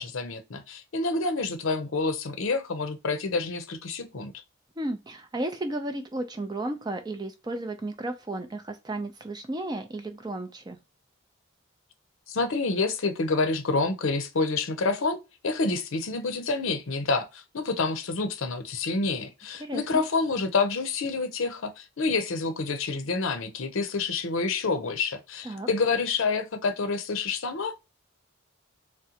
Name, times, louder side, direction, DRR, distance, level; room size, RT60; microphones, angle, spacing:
voice 1, 0.0-4.3 12.3-27.9, left 4 dB, 70° left, 0.6 m, -28 dB
voice 2, 4.8-10.8 19.6-20.0 25.4-25.7, right 1 dB, 20° right, 0.4 m, -33 dB
3.7 x 2.1 x 2.8 m
head